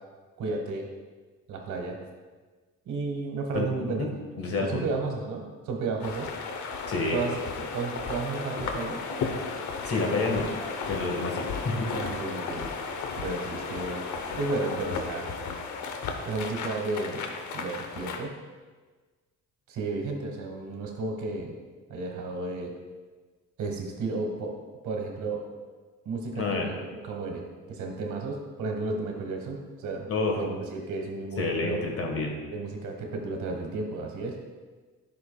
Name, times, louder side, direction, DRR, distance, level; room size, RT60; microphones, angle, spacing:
voice 1, 0.4-0.9 1.5-2.0 2.8-4.1 4.6-6.3 7.1-9.0 11.9-12.7 13.2-14.1 14.4-15.3 16.2-17.3 17.5-18.3 19.7-21.5 21.9-22.7 23.6-24.6 24.8-25.4 26.0-30.1 30.4-31.8 32.5-34.4, right 3 dB, 75° right, 2 dB, 1.4 m, -33 dB
voice 2, 4.4-4.9 6.9-7.2 9.8-10.5 10.9-11.9 26.4-26.7 30.1-30.4 31.4-32.4, left 3 dB, 50° left, 2 dB, 1.4 m, -28 dB
sound 1, 6.0-18.2, left 4 dB, 70° left, 0.8 m, -34 dB
9.7 x 6.0 x 2.2 m, 1.4 s
cardioid pair, 90°, 30 cm